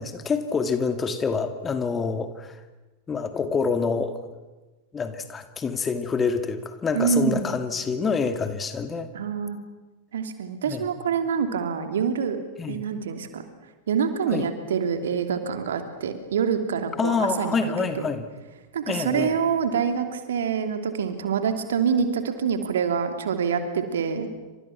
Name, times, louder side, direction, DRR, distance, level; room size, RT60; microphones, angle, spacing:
voice 1, 0.0-2.6 3.1-4.2 4.9-9.1 10.7-10.8 12.6-12.8 14.3-14.4 17.0-18.3 18.9-19.4, left 5 dB, 20° left, 8 dB, 2.3 m, -27 dB
voice 2, 6.9-7.5 9.1-9.6 10.1-12.4 12.7-13.4 13.9-17.9 18.7-24.3, right 6 dB, 65° right, 7 dB, 2.9 m, -26 dB
29.0 x 26.0 x 6.1 m, 1.2 s
figure-of-eight pair, 90°, 0 cm